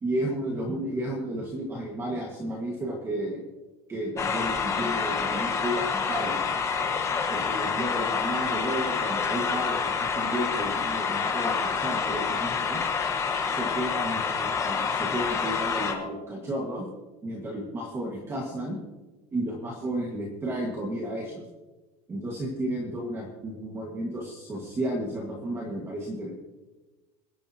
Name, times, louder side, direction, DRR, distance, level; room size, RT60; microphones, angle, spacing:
voice 1, 0.0-3.4 3.9-6.4 7.3-12.8 13.5-16.9 17.2-18.8 19.3-21.5 22.1-26.3, right 1 dB, 15° right, -1 dB, 1.6 m, -32 dB
sound 1, 4.2-15.9, left 5 dB, 15° left, 1.2 m, -28 dB
26.0 x 10.5 x 2.8 m, 1.2 s
cardioid pair, 180°, 19 cm